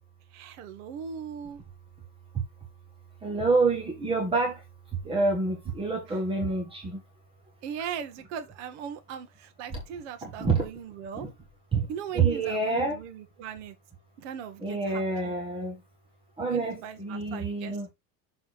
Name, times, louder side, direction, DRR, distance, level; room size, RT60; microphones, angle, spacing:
voice 1, 0.3-1.6 7.6-11.3 11.9-13.7 14.2-15.3 16.5-17.9, right 7 dB, 65° right, 1.5 m, -39 dB
voice 2, 3.2-4.5 5.0-7.0 10.2-10.6 11.7-11.8 12.1-13.0 14.6-15.7 16.4-17.9, right 3 dB, 15° right, 1.3 m, -27 dB
6.8 x 4.1 x 4.0 m
supercardioid pair, 165°, 39 cm